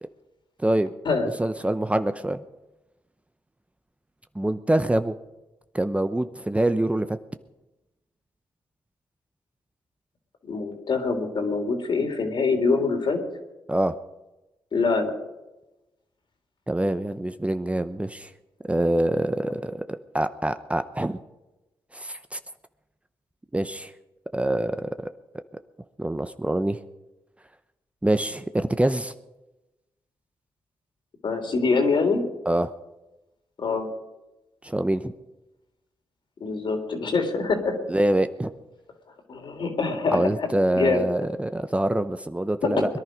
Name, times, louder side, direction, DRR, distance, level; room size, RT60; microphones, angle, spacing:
voice 1, 1.4-2.4 4.3-5.1 5.7-7.2 13.7-13.9 16.7-18.3 18.7-19.8 20.1-21.2 21.9-22.4 23.5-23.9 24.3-25.1 26.0-26.8 28.0-29.1 32.5-32.7 34.6-35.1 37.9-38.5 40.1-43.0, right 1 dB, 15° right, 10 dB, 0.8 m, -25 dB
voice 2, 10.4-13.2 14.7-15.1 31.2-32.2 33.6-33.9 36.4-37.8 39.3-40.5 40.7-41.0 42.6-42.7, left 4 dB, 65° left, 3 dB, 3.5 m, -24 dB
22.0 x 11.0 x 5.2 m, 1.0 s
cardioid pair, 55°, 9 cm